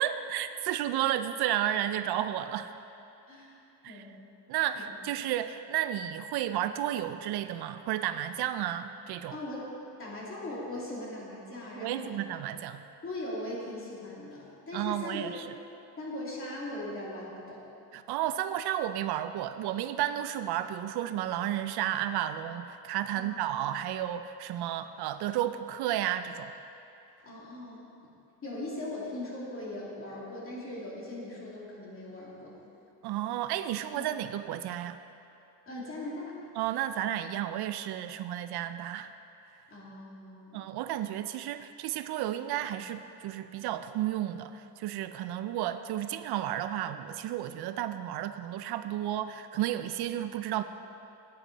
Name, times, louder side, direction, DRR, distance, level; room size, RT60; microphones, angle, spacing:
voice 1, 0.0-2.7 3.8-4.0 4.5-9.4 11.8-12.8 14.7-15.4 17.9-26.5 33.0-35.0 36.6-39.1 40.5-50.6, right 11 dB, 70° right, 11 dB, 0.5 m, -32 dB
voice 2, 3.3-3.6 3.9-4.2 4.8-4.9 9.3-12.1 13.0-15.3 16.0-17.6 23.1-23.3 27.2-27.9 28.4-32.6 33.9-34.0 35.7-36.4 39.7-40.7, left 1 dB, 35° left, -5 dB, 2.6 m, -39 dB
9.8 x 9.3 x 4.1 m, 2.8 s
cardioid pair, 120°, 40 cm